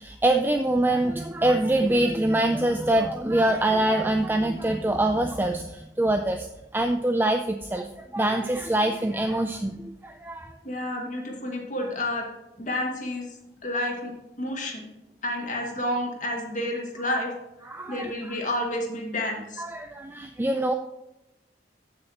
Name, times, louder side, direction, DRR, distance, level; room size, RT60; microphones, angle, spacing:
voice 1, 0.0-6.5 6.7-10.5 17.6-18.4 19.6-20.7, right 1 dB, 10° right, 6 dB, 0.4 m, -24 dB
voice 2, 10.6-12.3 12.6-14.9 15.2-17.3 17.6-19.6, left 1 dB, 45° left, 0 dB, 2.1 m, -30 dB
14.5 x 6.4 x 3.0 m, 0.97 s
head